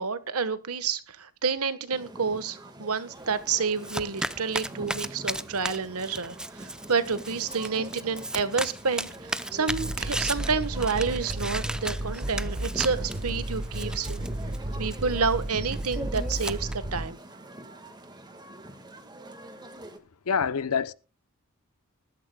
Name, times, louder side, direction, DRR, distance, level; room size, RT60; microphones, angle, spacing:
voice 1, 0.0-14.2 14.8-17.2, right 5 dB, 80° right, 1.2 m, -29 dB
sound 1, 1.9-20.0, right 1 dB, 20° right, 1.6 m, -45 dB
Domestic sounds home sounds, 3.2-16.7, right 1 dB, 5° right, 0.5 m, -37 dB
sound 2, 9.7-17.1, right 1 dB, 40° right, 1.2 m, -33 dB
voice 2, 20.3-20.9, left 6 dB, 90° left, 0.7 m, -26 dB
20.5 x 12.5 x 2.2 m
head